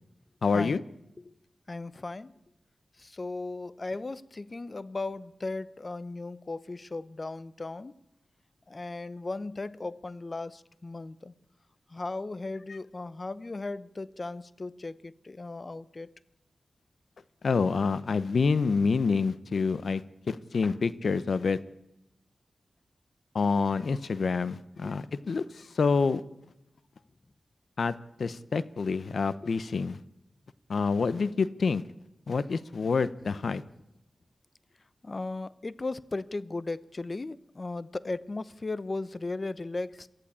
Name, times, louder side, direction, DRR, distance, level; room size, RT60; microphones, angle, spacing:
voice 1, 0.4-0.8 17.4-20.0 20.3-21.6 23.3-25.4 25.8-26.2 27.8-27.9 28.2-30.0 30.7-31.8 32.3-33.6, left 4 dB, 75° left, 0.8 m, -27 dB
voice 2, 1.7-2.3 3.0-7.9 8.7-11.3 11.9-16.1 20.6-20.8 24.8-25.0 35.0-40.1, left 3 dB, 45° left, 0.9 m, -36 dB
23.0 x 14.5 x 8.7 m
cardioid pair, 50°, 0 cm